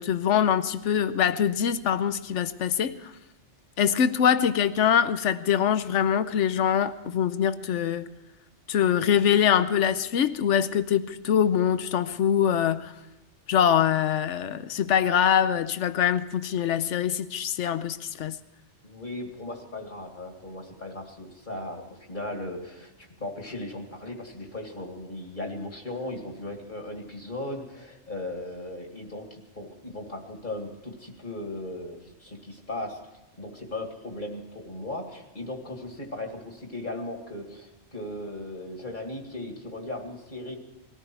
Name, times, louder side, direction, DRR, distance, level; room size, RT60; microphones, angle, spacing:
voice 1, 0.0-3.0 3.8-8.1 8.7-12.9 13.5-18.4, left 8 dB, 85° left, 1.1 m, -24 dB
voice 2, 18.8-22.9 23.2-33.0 33.4-40.6, left 1 dB, 45° left, 2.4 m, -37 dB
20.5 x 14.0 x 4.6 m
omnidirectional pair, 1.2 m